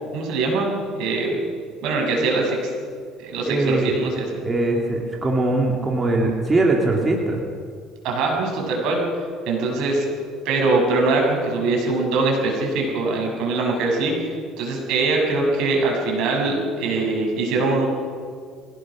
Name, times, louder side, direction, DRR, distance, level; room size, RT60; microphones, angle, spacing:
voice 1, 0.1-1.3 1.8-2.7 3.2-4.2 8.0-9.0 9.5-10.1 10.5-14.1 14.6-17.9, right 3 dB, 70° right, 0 dB, 6.8 m, -22 dB
voice 2, 3.5-4.0 4.4-7.4, right 2 dB, 20° right, 0 dB, 2.8 m, -21 dB
24.0 x 17.5 x 6.4 m, 2.1 s
cardioid pair, 125°, 0 cm